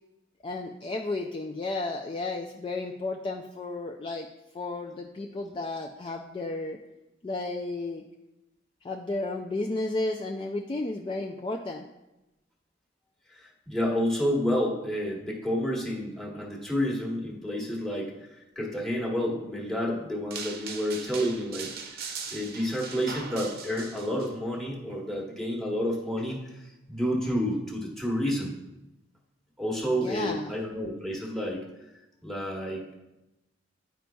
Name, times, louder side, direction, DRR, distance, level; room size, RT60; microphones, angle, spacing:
voice 1, 0.4-4.3 4.5-6.8 7.2-8.0 8.8-11.8 29.9-30.5, left 2 dB, 25° left, 1 dB, 0.3 m, -33 dB
voice 2, 13.3-18.3 18.5-21.7 22.3-28.5 29.6-31.6 32.2-32.9, equal, ahead, -3 dB, 1.1 m, -30 dB
sound 1, 20.3-24.3, right 5 dB, 55° right, 0.7 m, -40 dB
9.2 x 5.1 x 2.3 m, 0.96 s
head